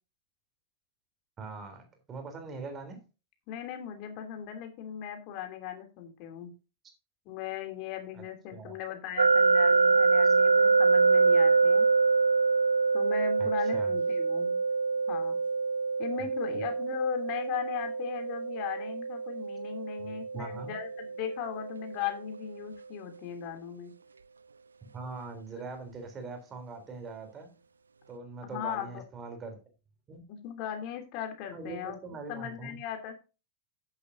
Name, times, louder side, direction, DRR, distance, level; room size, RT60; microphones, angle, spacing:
voice 1, 1.4-3.0 8.1-8.2 8.5-8.8 13.4-13.9 16.5-16.7 20.0-20.7 24.9-27.5 28.1-29.6 30.1-30.2 31.5-32.8, right 4 dB, 25° right, 6 dB, 3.5 m, -42 dB
voice 2, 3.5-6.5 7.2-11.9 12.9-14.6 15.1-15.4 16.0-23.9 28.4-29.0 30.3-32.0 32.3-33.1, left 10 dB, 45° left, 6 dB, 2.9 m, -38 dB
sound 1, 9.2-22.1, right 4 dB, 75° right, 0.5 m, -25 dB
11.0 x 9.9 x 2.7 m, 0.30 s
figure-of-eight pair, 90°, 0 cm